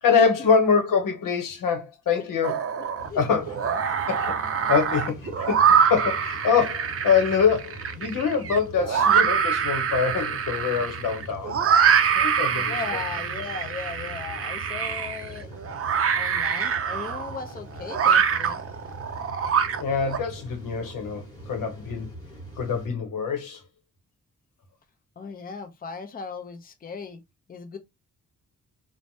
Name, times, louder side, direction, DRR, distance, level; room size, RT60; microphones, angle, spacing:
voice 1, 0.0-2.6 3.1-3.5 3.8-4.3 4.7-11.6 12.1-12.8 19.8-22.1 22.6-23.6, left 6 dB, 85° left, 0.9 m, -24 dB
voice 2, 2.2-3.2 12.2-12.4 12.7-15.5 16.1-18.6 25.2-27.2 27.5-27.8, left 5 dB, 30° left, 0.5 m, -37 dB
sound 1, 2.4-3.1 3.5-20.2, right 7 dB, 45° right, 0.5 m, -24 dB
sound 2, 3.0-22.9, right 1 dB, 10° left, 1.4 m, -43 dB
3.1 x 2.1 x 2.6 m
cardioid pair, 90°, 32 cm